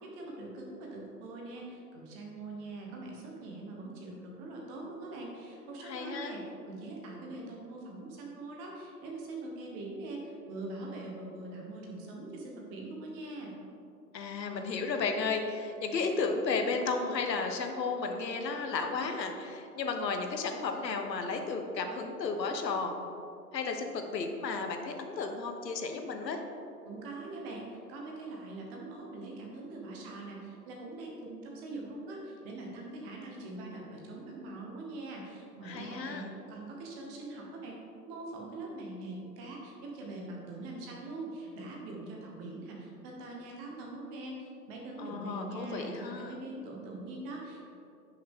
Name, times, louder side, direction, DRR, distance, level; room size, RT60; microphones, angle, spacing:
voice 1, 0.0-13.5 26.9-37.8 38.1-47.7, right 2 dB, 15° right, -1 dB, 0.9 m, -43 dB
voice 2, 5.8-6.3 14.1-22.9 23.5-26.4 35.6-36.3 45.0-46.4, left 4 dB, 80° left, 5 dB, 1.3 m, -33 dB
10.5 x 6.3 x 3.6 m, 2.7 s
hypercardioid pair, 150°, 49 cm